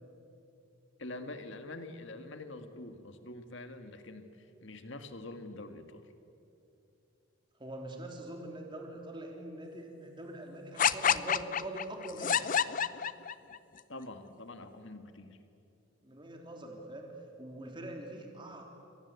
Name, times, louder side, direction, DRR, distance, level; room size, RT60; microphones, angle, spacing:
voice 1, 1.0-6.1 13.9-15.4, left 2 dB, 60° left, 8 dB, 1.9 m, -45 dB
voice 2, 7.6-12.5 16.0-18.6, right 1 dB, 20° right, 2 dB, 3.3 m, -43 dB
sound 1, 10.8-13.6, left 7 dB, 40° left, 0.6 m, -28 dB
29.0 x 23.5 x 8.3 m, 2.8 s
head